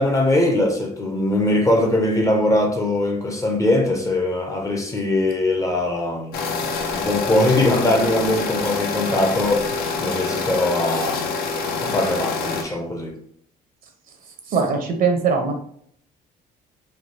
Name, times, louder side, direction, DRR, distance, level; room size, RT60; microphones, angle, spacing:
voice 1, 0.0-6.5 6.9-9.7 10.0-11.3 11.8-13.1, left 1 dB, 20° left, 0.6 m, -21 dB
sound 1, 6.3-12.6, left 4 dB, 65° left, 0.6 m, -26 dB
voice 2, 14.5-15.5, right 5 dB, 55° right, 0.7 m, -20 dB
3.3 x 2.3 x 2.7 m
cardioid pair, 110°, 17 cm